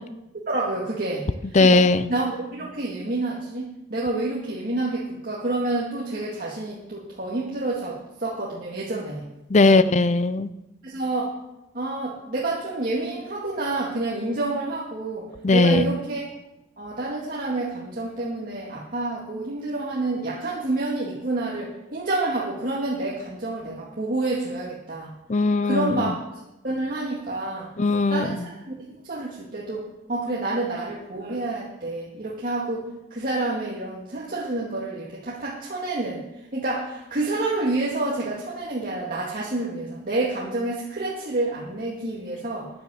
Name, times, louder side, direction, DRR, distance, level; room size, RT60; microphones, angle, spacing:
voice 1, 0.5-1.2 1.6-1.8 2.1-9.3 9.7-9.9 10.8-11.4 11.7-16.2 16.8-25.1 25.6-27.7 28.1-28.7 29.0-36.2 36.5-42.7, right 2 dB, 45° right, -4 dB, 2.0 m, -28 dB
voice 2, 1.5-2.1 9.5-10.5 15.4-15.9 25.3-26.1 27.8-28.5, left 3 dB, 35° left, 14 dB, 0.5 m, -19 dB
10.0 x 9.9 x 7.0 m, 0.93 s
head